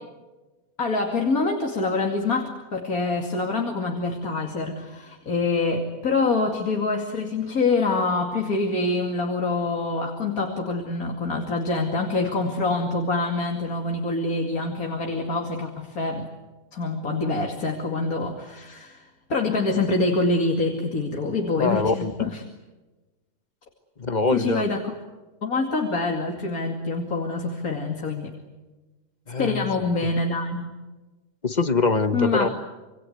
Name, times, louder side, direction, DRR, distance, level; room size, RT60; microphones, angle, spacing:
voice 1, 0.8-16.3 16.7-22.4 24.3-24.9 25.4-28.3 29.4-30.7 32.1-32.5, left 3 dB, 75° left, 2 dB, 2.9 m, -25 dB
voice 2, 21.6-22.1 24.0-24.6 29.3-29.7 31.4-32.5, left 3 dB, 30° left, 11 dB, 1.2 m, -23 dB
27.0 x 25.0 x 8.1 m, 1.2 s
omnidirectional pair, 1.5 m